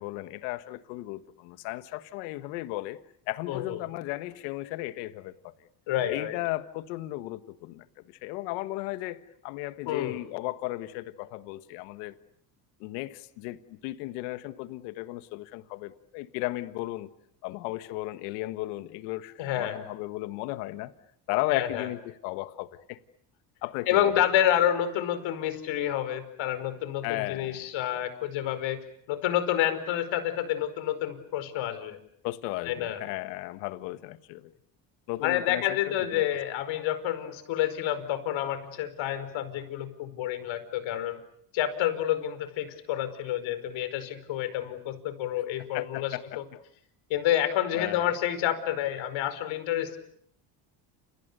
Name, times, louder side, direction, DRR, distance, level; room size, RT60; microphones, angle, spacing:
voice 1, 0.0-3.0 3.3-5.5 6.1-12.1 12.8-17.1 17.4-20.9 21.3-23.0 23.6-24.1 27.0-27.6 32.2-34.5 35.1-36.2 45.7-46.4 47.7-48.1, left 18 dB, 85° left, 12 dB, 1.7 m, -35 dB
voice 2, 3.5-3.8 5.9-6.4 9.8-10.2 19.4-19.7 21.5-21.9 23.9-28.8 29.1-32.0 32.6-33.0 35.2-41.2 41.5-46.4 47.1-50.0, left 11 dB, 70° left, 12 dB, 5.1 m, -29 dB
30.0 x 29.0 x 6.8 m, 0.68 s
supercardioid pair, 90°, 48 cm